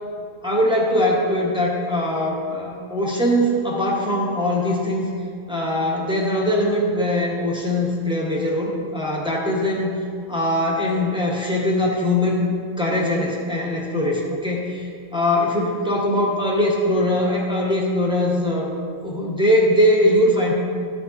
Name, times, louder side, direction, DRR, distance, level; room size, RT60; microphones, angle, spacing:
voice 1, 0.4-5.1 5.5-9.9 10.3-18.7 19.0-20.5, left 1 dB, 5° right, -3 dB, 1.2 m, -21 dB
13.0 x 6.9 x 2.8 m, 2.3 s
omnidirectional pair, 1.4 m